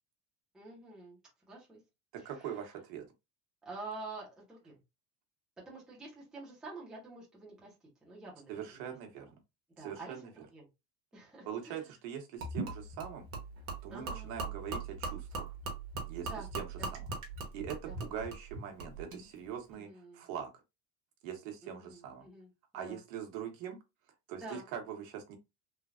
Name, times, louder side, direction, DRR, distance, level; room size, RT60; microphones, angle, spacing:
voice 1, 0.5-1.2 1.5-1.8 2.2-2.6 3.6-4.8 5.7-7.7 8.0-8.8 9.1-9.2 9.8-10.7 11.1-11.8 13.9-14.4 16.3-16.5 16.8-16.9 17.8-18.0 19.7-20.2 21.6-23.0 24.4-24.7, right 3 dB, ahead, 0.6 m, -48 dB
voice 2, 2.1-3.1 8.5-9.3 9.8-10.3 11.5-13.3 13.8-15.6 16.1-17.1 17.5-20.5 21.2-22.3 22.7-23.8 24.3-25.4, right 8 dB, 70° right, 0.9 m, -42 dB
Gurgling / Liquid, 12.4-19.2, right 3 dB, 35° right, 0.8 m, -40 dB
3.2 x 2.2 x 2.4 m
cardioid pair, 180°, 39 cm